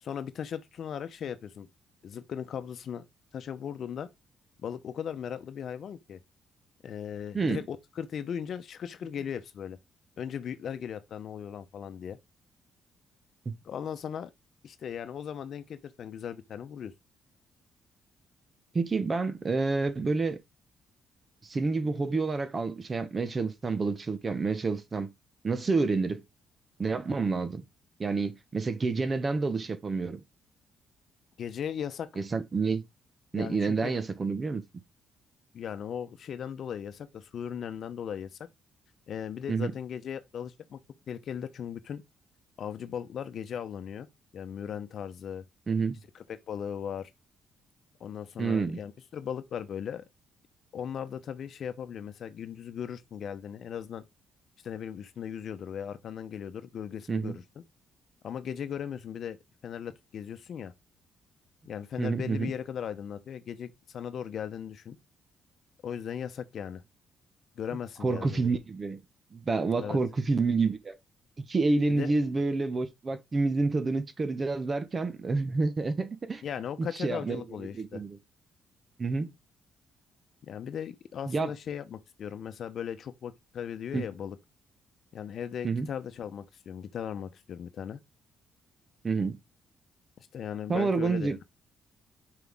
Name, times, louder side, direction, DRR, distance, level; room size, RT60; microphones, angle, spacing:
voice 1, 0.0-1.7 2.0-3.0 3.3-4.1 4.6-6.2 6.8-9.8 10.2-12.2 13.6-14.3 14.6-16.9 31.4-32.1 33.3-34.0 35.5-38.4 39.1-40.8 41.1-42.0 42.6-44.1 44.3-45.4 46.1-47.1 48.0-50.0 50.7-54.0 54.6-57.4 58.2-59.4 59.6-60.7 61.7-65.0 65.8-66.8 67.6-68.5 69.8-70.0 71.9-72.1 76.4-78.0 80.4-84.4 85.1-88.0 90.2-91.4, left 8 dB, 60° left, 0.8 m, -37 dB
voice 2, 18.7-20.4 21.4-25.1 25.4-26.2 26.8-27.6 28.0-30.2 32.2-32.8 33.3-34.6 39.5-39.7 45.7-46.0 48.4-48.8 57.1-57.4 62.0-62.5 68.0-69.0 69.3-71.0 71.4-76.4 76.8-78.2 79.0-79.3 81.3-81.5 83.9-84.1 85.6-85.9 89.0-89.4 90.7-91.4, right 4 dB, 35° right, 1.1 m, -29 dB
6.0 x 5.0 x 3.6 m
cardioid pair, 90°, 0 cm